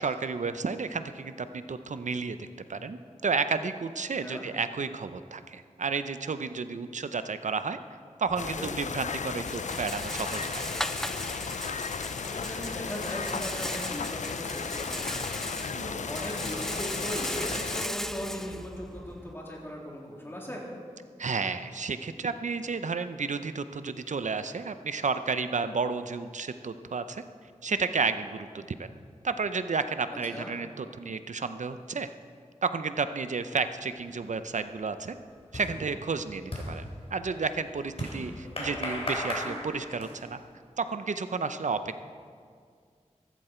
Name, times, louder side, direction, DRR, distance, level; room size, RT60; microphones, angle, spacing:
voice 1, 0.0-7.8 8.2-10.7 15.7-16.1 21.2-27.2 27.6-28.9 29.2-32.1 32.6-35.1 35.5-36.8 37.1-40.4 40.8-42.0, right 4 dB, 80° right, 11 dB, 0.7 m, -32 dB
Rattle, 8.3-19.3, equal, 5° left, 0.5 m, -37 dB
sound 1, 8.4-17.9, left 6 dB, 75° left, 0.4 m, -35 dB
voice 2, 12.1-20.6 30.3-30.5, equal, 20° left, -3 dB, 3.4 m, -38 dB
sound 2, 33.9-34.3 34.6-40.4, left 1 dB, 50° left, 3.6 m, -37 dB
14.5 x 14.5 x 4.5 m, 2.1 s
wide cardioid pair, 80°, 12 cm